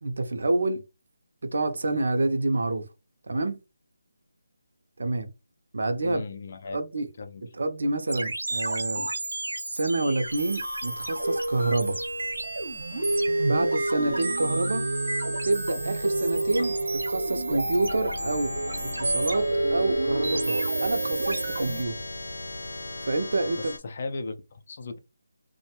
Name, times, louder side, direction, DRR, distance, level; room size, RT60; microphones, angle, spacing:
voice 1, 0.0-0.8 1.4-2.9 3.3-3.6 5.0-5.3 5.7-6.2 6.7-7.1 7.6-9.1 9.7-12.0 13.4-14.9 15.4-18.6 18.8-22.1 23.1-23.7, right 2 dB, 60° right, 0.6 m, -28 dB
voice 2, 6.0-6.8 7.2-7.4 23.6-25.0, left 3 dB, 35° left, 0.4 m, -36 dB
sound 1, 8.1-21.8, right 2 dB, 90° right, 0.9 m, -29 dB
sound 2, 10.2-23.8, left 2 dB, 80° left, 0.7 m, -40 dB
2.5 x 2.2 x 2.9 m
hypercardioid pair, 175°, 0 cm